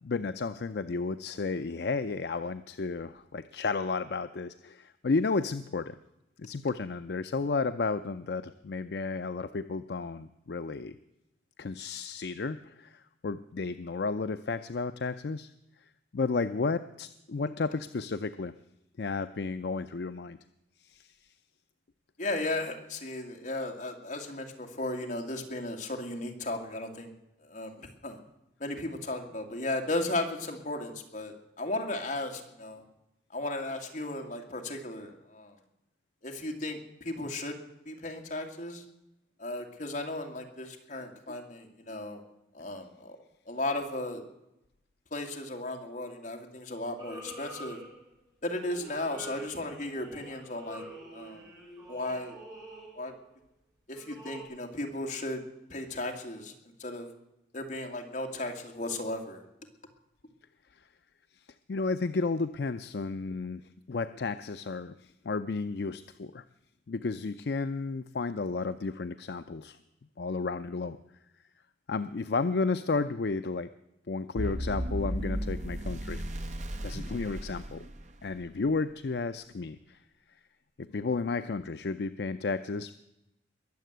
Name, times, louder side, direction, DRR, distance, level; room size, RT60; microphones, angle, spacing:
voice 1, 0.0-5.9 6.4-11.0 11.6-15.5 16.1-18.5 19.0-20.4 20.8-21.2 60.7-60.8 61.7-63.6 63.9-66.4 66.9-69.8 70.2-71.0 71.9-73.7 74.1-76.2 76.8-77.8 78.2-80.0 80.8-83.0, left 4 dB, 65° left, 11 dB, 0.5 m, -32 dB
voice 2, 22.2-27.1 27.5-28.2 28.6-32.8 33.3-35.5 36.2-37.6 37.9-38.8 39.4-42.2 42.5-43.2 43.5-44.2 45.1-47.8 48.4-50.8 51.1-51.4 51.9-52.4 53.0-53.1 53.9-55.4 55.7-56.5 56.8-57.1 57.5-59.4, left 2 dB, 45° left, 2 dB, 2.3 m, -35 dB
sound 1, 47.0-48.2 48.6-53.2 53.9-54.4, right 1 dB, 20° right, 4.8 m, -46 dB
sound 2, 74.4-78.5, equal, 40° right, 1.0 m, -35 dB
21.5 x 7.5 x 8.0 m, 0.86 s
head